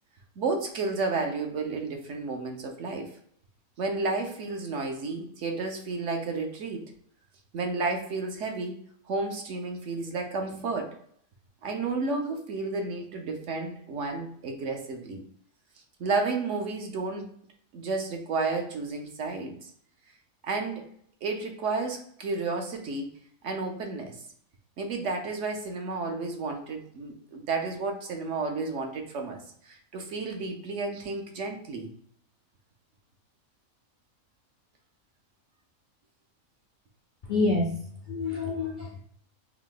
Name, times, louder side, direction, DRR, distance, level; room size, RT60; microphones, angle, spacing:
voice 1, 0.4-3.1 3.8-6.8 7.5-8.8 9.1-10.9 11.6-15.2 16.0-17.3 17.7-19.6 20.4-20.8 21.2-23.1 23.4-24.2 24.8-31.9, right 3 dB, 65° right, 3 dB, 1.0 m, -32 dB
voice 2, 37.2-37.7 38.1-39.0, left 3 dB, 55° left, -1 dB, 0.5 m, -27 dB
3.6 x 2.7 x 3.7 m, 0.64 s
omnidirectional pair, 1.5 m